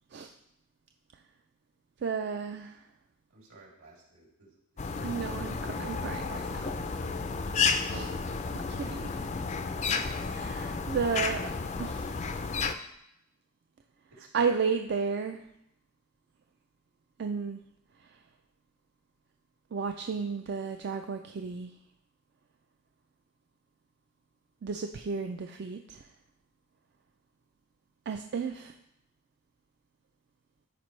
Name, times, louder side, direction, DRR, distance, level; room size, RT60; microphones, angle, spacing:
voice 1, 2.0-2.8 5.0-6.8 7.9-8.1 8.5-9.2 10.2-11.4 11.8-12.2 14.3-15.4 17.2-17.6 19.7-21.7 24.6-26.0 28.1-28.7, right 5 dB, 50° right, 6 dB, 0.3 m, -33 dB
voice 2, 3.3-5.3 6.7-7.6 14.1-14.5, right 2 dB, 75° right, -3 dB, 2.8 m, -57 dB
sound 1, 4.8-12.8, left 5 dB, 30° left, 0.4 m, -32 dB
13.5 x 5.0 x 3.2 m, 0.79 s
head